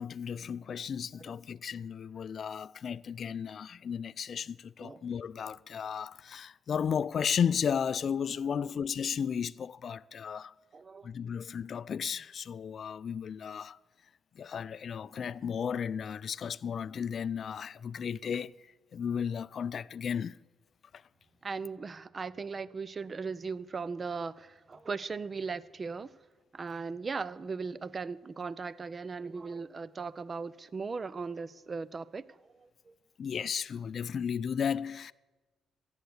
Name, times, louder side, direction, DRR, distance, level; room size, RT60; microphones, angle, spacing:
voice 1, 0.0-10.5 11.0-13.8 14.4-18.5 18.9-20.4 20.9-21.0 33.2-35.1, left 7 dB, 55° left, 0.3 m, -34 dB
voice 2, 10.7-11.1 21.4-26.1 26.5-33.0, right 4 dB, 35° right, 0.5 m, -38 dB
14.5 x 8.1 x 8.1 m
cardioid pair, 90°, 0 cm